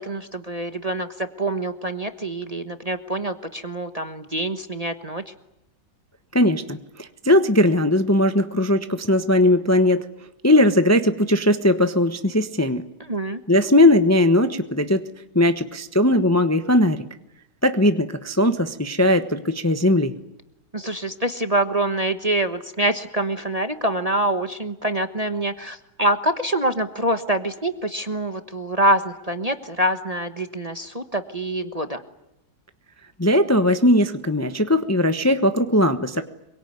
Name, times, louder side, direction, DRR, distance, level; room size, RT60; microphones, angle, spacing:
voice 1, 0.0-5.2 13.1-13.4 20.7-32.0, right 1 dB, 25° right, 7 dB, 1.1 m, -25 dB
voice 2, 6.3-10.1 10.4-12.8 13.5-15.0 15.3-17.0 17.6-20.1 33.2-36.2, left 1 dB, 10° left, 8 dB, 0.9 m, -19 dB
26.0 x 23.5 x 9.6 m, 0.84 s
omnidirectional pair, 2.0 m